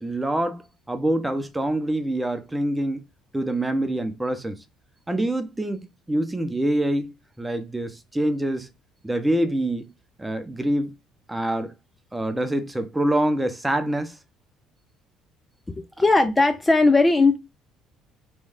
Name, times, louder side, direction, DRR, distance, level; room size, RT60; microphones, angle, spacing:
voice 1, 0.0-3.0 3.3-4.5 5.1-8.7 9.0-9.9 10.2-10.9 11.3-11.7 12.1-14.2, right 1 dB, 10° right, 0.9 m, -25 dB
voice 2, 15.8-17.4, left 3 dB, 20° left, 0.5 m, -18 dB
3.3 x 3.1 x 3.5 m
hypercardioid pair, 55°, 0 cm